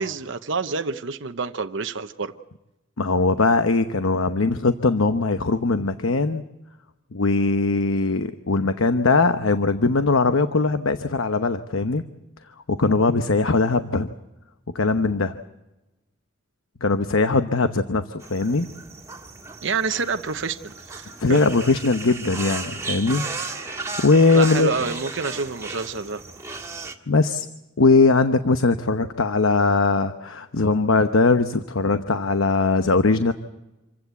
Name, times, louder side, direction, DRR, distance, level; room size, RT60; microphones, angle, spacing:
voice 1, 0.0-2.3 19.6-21.4 24.3-26.2, right 4 dB, 65° right, 8 dB, 0.9 m, -28 dB
voice 2, 3.0-6.4 7.1-12.0 12.7-14.1 14.7-15.4 16.8-18.7 21.2-23.3 24.0-24.7 27.1-27.5 27.8-33.3, left 3 dB, 85° left, 9 dB, 0.9 m, -20 dB
sound 1, 18.2-27.0, right 3 dB, 15° right, 1.7 m, -35 dB
27.0 x 15.5 x 8.2 m, 1.0 s
head